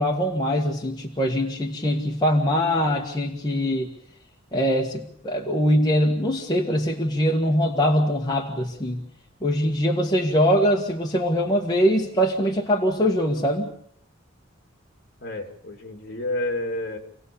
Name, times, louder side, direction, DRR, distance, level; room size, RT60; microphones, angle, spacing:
voice 1, 0.0-3.9 4.5-9.0 9.4-13.7, equal, 20° left, 0 dB, 1.8 m, -22 dB
voice 2, 15.2-17.0, left 1 dB, 50° left, 4 dB, 3.0 m, -30 dB
27.0 x 17.0 x 7.1 m, 0.67 s
head